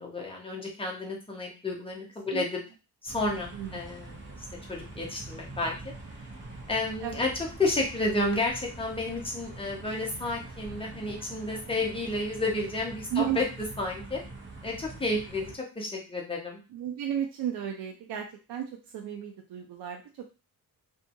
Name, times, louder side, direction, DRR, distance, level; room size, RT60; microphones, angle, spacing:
voice 1, 0.0-2.6 3.0-5.7 6.2-6.3 6.7-7.3 7.6-13.4 13.8-14.2 14.6-16.6, left 2 dB, 15° left, -1 dB, 0.7 m, -31 dB
City Street, 3.1-15.6, right 2 dB, 30° right, 0.7 m, -44 dB
voice 2, 3.5-3.8 7.0-7.2 13.1-13.5 16.7-20.3, right 10 dB, 75° right, 2 dB, 0.5 m, -33 dB
2.7 x 2.3 x 2.5 m, 0.32 s
wide cardioid pair, 150°, 40 cm